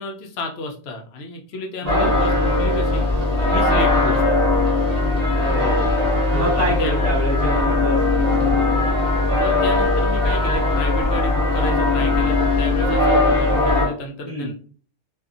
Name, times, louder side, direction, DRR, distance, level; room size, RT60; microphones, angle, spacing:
voice 1, 0.0-3.0 3.4-4.4 6.3-7.2 9.4-14.5, left 2 dB, 65° left, 2 dB, 0.8 m, -31 dB
sound 1, 1.9-13.9, left 2 dB, 35° right, 0.9 m, -19 dB
voice 2, 5.3-5.9 6.3-8.8 14.2-14.5, equal, 20° left, -6 dB, 0.9 m, -26 dB
2.6 x 2.3 x 2.4 m, 0.43 s
omnidirectional pair, 1.2 m